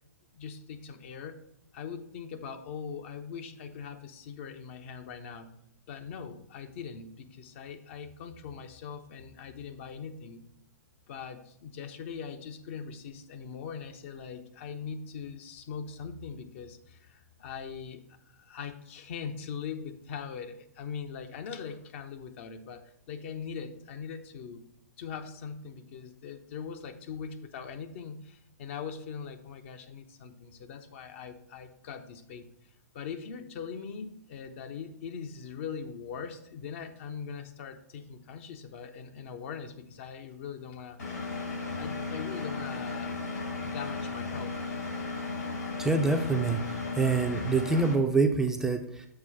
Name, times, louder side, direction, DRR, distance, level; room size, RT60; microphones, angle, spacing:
voice 1, 0.3-1.4 1.7-5.5 5.9-10.4 11.1-24.7 25.0-32.5 32.9-43.2 43.5-44.6, left 6 dB, 45° left, 7 dB, 0.7 m, -41 dB
Engine, 41.0-47.9, left 3 dB, 70° left, 3.1 m, -35 dB
voice 2, 45.8-46.6 47.0-49.1, right 4 dB, 5° right, 4 dB, 0.5 m, -26 dB
6.8 x 4.5 x 5.5 m, 0.74 s
figure-of-eight pair, 115°, 9 cm